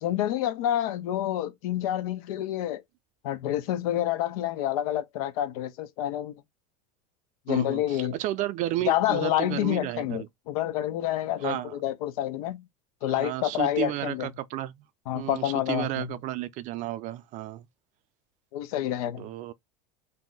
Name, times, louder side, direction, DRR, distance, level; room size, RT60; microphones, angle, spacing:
voice 1, 0.0-2.8 3.2-6.3 7.5-8.1 8.9-12.6 13.0-14.3 15.1-16.1 18.5-19.3, left 12 dB, 75° left, 0.6 m, -28 dB
voice 2, 7.5-10.3 11.4-11.8 13.1-14.8 15.1-17.7 19.2-19.5, right 14 dB, 40° right, 0.4 m, -32 dB
2.7 x 2.1 x 3.7 m
supercardioid pair, 130°, 19 cm